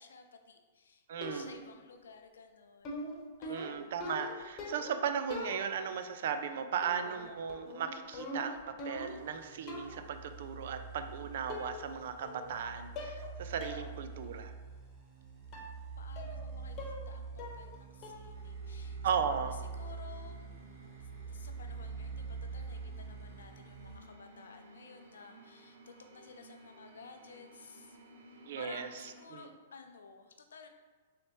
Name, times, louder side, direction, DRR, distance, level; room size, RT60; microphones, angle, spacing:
voice 1, 0.0-1.0 1.3-4.0 16.0-19.0 19.7-20.5 21.2-28.0 28.3-30.7, left 5 dB, 75° left, 6 dB, 0.5 m, -54 dB
voice 2, 1.1-1.5 3.5-14.5 19.0-19.6 28.5-28.9 29.3-29.5, right 7 dB, 60° right, 8 dB, 0.4 m, -36 dB
sound 1, 1.2-1.8 2.8-5.0 5.3-6.0 6.8-7.2 7.5-9.3 9.7-10.1 11.0-11.1 11.5-12.0 12.2-12.6 13.0-13.3 13.6-13.8 14.2-14.3 15.5-15.8 16.2-16.5 16.8-17.1 17.4-17.8 18.0-18.4, left 2 dB, 35° left, 1.0 m, -43 dB
sound 2, 8.9-24.0, right 5 dB, 20° right, 0.9 m, -45 dB
brt sol tmty revbs rvs, 18.3-29.2, right 1 dB, 90° right, 0.8 m, -57 dB
4.2 x 3.2 x 3.1 m, 1.4 s
hypercardioid pair, 115°, 0 cm